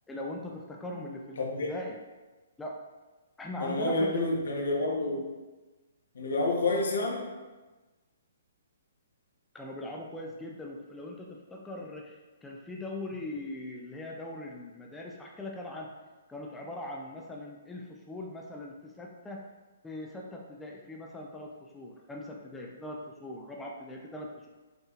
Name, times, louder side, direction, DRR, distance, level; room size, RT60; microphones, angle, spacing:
voice 1, 0.1-2.0 2.6-2.8 3.4-4.3 9.5-15.9 16.3-19.4 19.8-24.5, left 1 dB, 5° left, -1 dB, 0.4 m, -40 dB
voice 2, 1.4-1.7 3.6-5.2 6.1-7.3, left 2 dB, 80° left, -1 dB, 1.0 m, -29 dB
5.5 x 2.9 x 2.4 m, 1.2 s
hypercardioid pair, 150°, 0 cm